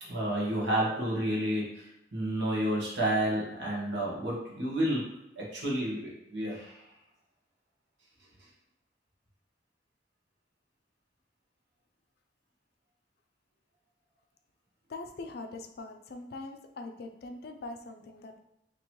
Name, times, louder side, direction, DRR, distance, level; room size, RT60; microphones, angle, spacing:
voice 1, 0.0-5.1 5.4-6.8, right 1 dB, 80° right, -5 dB, 1.2 m, -30 dB
voice 2, 14.9-18.4, left 2 dB, 60° left, 6 dB, 0.4 m, -42 dB
2.9 x 2.9 x 4.4 m, 0.85 s
head